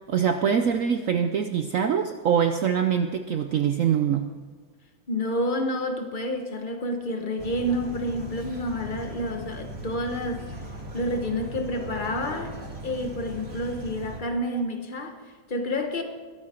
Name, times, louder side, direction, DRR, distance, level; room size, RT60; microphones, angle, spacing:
voice 1, 0.1-4.3, right 8 dB, 85° right, 0.7 m, -24 dB
voice 2, 5.1-10.5 10.9-12.5 12.8-16.0, left 1 dB, 30° left, 1.1 m, -29 dB
sound 1, 7.4-14.2, right 1 dB, 35° right, 2.2 m, -39 dB
22.0 x 8.7 x 4.4 m
omnidirectional pair, 2.1 m